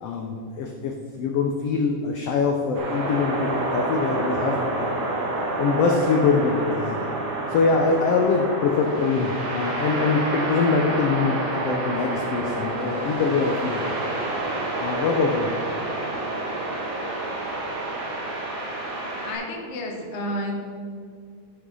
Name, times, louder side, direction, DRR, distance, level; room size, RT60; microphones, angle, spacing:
voice 1, 0.0-4.9 5.6-7.1 7.5-14.0 14.8-15.5, left 4 dB, 90° left, 2 dB, 1.3 m, -24 dB
sound 1, 2.7-19.3, right 2 dB, 65° right, 3.6 m, -28 dB
voice 2, 19.0-20.5, left 1 dB, 70° left, 0 dB, 0.6 m, -31 dB
13.5 x 6.2 x 5.4 m, 2.2 s
omnidirectional pair, 3.8 m